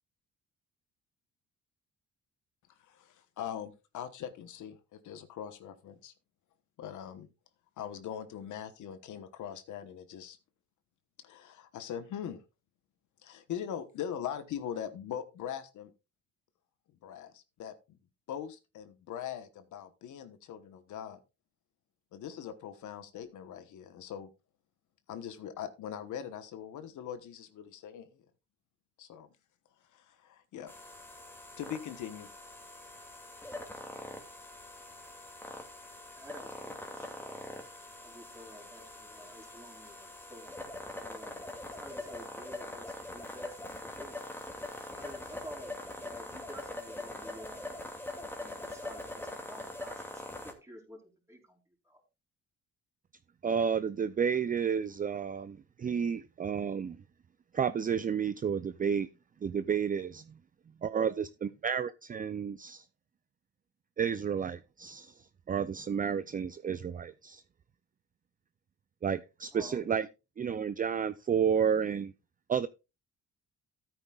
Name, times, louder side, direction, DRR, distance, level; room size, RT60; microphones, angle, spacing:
voice 1, 2.8-6.1 6.8-7.3 7.8-10.4 11.2-12.4 13.2-15.9 17.0-18.0 18.3-21.2 22.1-24.3 25.1-28.2 29.0-29.3 29.9-30.7 31.6-32.3, left 9 dB, 75° left, 1.2 m, -41 dB
sound 1, 30.7-50.5, left 1 dB, 5° left, 2.4 m, -43 dB
voice 2, 36.2-37.4 38.0-40.5 41.0-44.2 44.9-51.0 51.3-51.4 51.9-52.0 69.5-70.1, equal, 10° right, 4.3 m, -51 dB
voice 3, 53.4-57.0 57.5-59.1 59.4-60.2 60.8-62.8 64.0-65.1 65.5-67.4 69.0-70.1 70.4-72.1 72.5-72.7, right 7 dB, 30° right, 0.5 m, -31 dB
14.0 x 9.1 x 2.4 m
cardioid pair, 90°, 30 cm